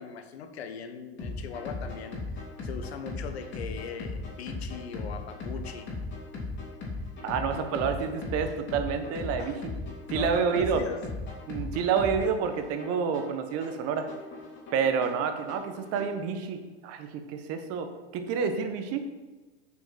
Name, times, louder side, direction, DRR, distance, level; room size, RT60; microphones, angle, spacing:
voice 1, 0.0-2.2 2.6-5.9 9.4-9.6 10.1-11.1, left 6 dB, 80° left, 8 dB, 1.1 m, -40 dB
sound 1, 1.2-16.2, left 3 dB, 35° left, 3.1 m, -38 dB
voice 2, 7.2-9.6 10.1-10.8 11.5-14.1 14.7-19.0, right 6 dB, 50° right, 7 dB, 1.3 m, -29 dB
7.2 x 6.0 x 5.8 m, 1.2 s
hypercardioid pair, 100°, 31 cm